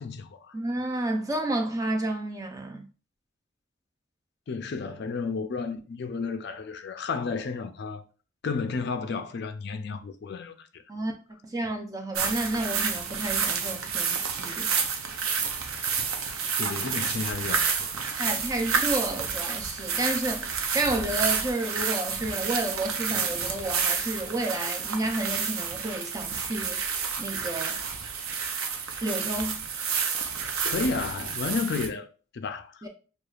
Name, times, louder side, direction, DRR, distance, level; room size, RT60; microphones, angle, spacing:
voice 1, 0.0-0.5 4.5-8.0 8.4-10.8 16.6-17.9 30.6-32.1 32.3-32.8, left 4 dB, 50° left, 0.4 m, -32 dB
voice 2, 0.5-2.9 10.9-11.1 11.4-14.7 18.2-26.8 27.2-27.8 29.0-29.7 32.8-32.9, right 2 dB, 15° right, 0.5 m, -31 dB
sound 1, 12.1-31.9, right 6 dB, 85° right, 0.6 m, -30 dB
6.5 x 2.3 x 2.4 m
head